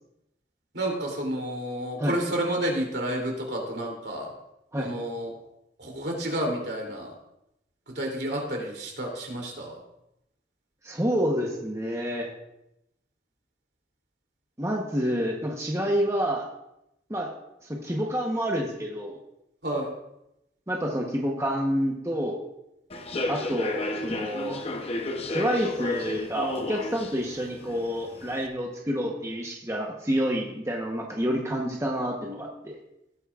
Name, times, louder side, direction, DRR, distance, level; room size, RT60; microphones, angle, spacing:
voice 1, 0.7-4.3 4.8-5.3 5.8-7.1 7.9-9.7 19.6-19.9, right 1 dB, 70° right, 0 dB, 3.0 m, -30 dB
voice 2, 10.8-12.3 14.6-16.5 17.1-17.3 17.7-19.1 20.7-22.4 23.3-24.6 25.3-32.8, equal, 15° right, 0 dB, 1.0 m, -28 dB
Human voice / Subway metro underground, 22.9-28.4, left 2 dB, 35° left, 0.8 m, -33 dB
17.5 x 9.1 x 2.5 m, 0.85 s
head